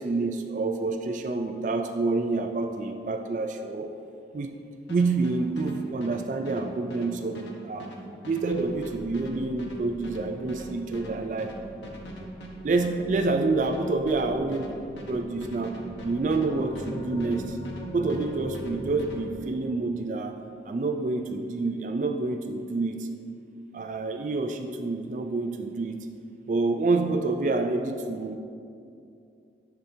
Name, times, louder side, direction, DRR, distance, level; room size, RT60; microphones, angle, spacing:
voice 1, 0.0-3.9 4.3-4.6 4.9-7.9 8.3-11.5 12.6-14.8 15.1-15.8 16.0-17.6 17.9-20.4 20.7-23.1 23.7-26.1 26.5-28.4, right 3 dB, 45° right, 6 dB, 0.3 m, -28 dB
sound 1, 4.9-17.8 18.1-19.2, equal, 85° left, 1.0 m, -42 dB
sound 2, 8.5-19.4, left 1 dB, 25° left, 0.4 m, -43 dB
10.5 x 6.9 x 2.7 m, 2.5 s
head